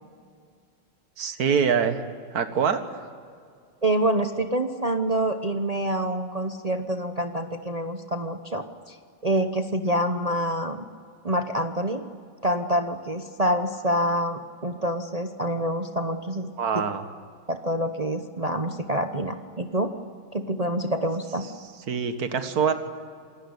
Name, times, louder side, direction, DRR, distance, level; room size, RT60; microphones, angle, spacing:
voice 1, 1.2-2.0 2.3-2.8 16.6-17.1 21.9-22.7, right 6 dB, 45° right, 8 dB, 1.9 m, -24 dB
voice 2, 3.8-9.0 9.2-10.9 11.2-12.0 12.4-16.5 17.5-19.9 20.3-21.5, right 1 dB, 65° right, 6 dB, 0.3 m, -26 dB
27.0 x 19.5 x 9.7 m, 2.2 s
omnidirectional pair, 2.4 m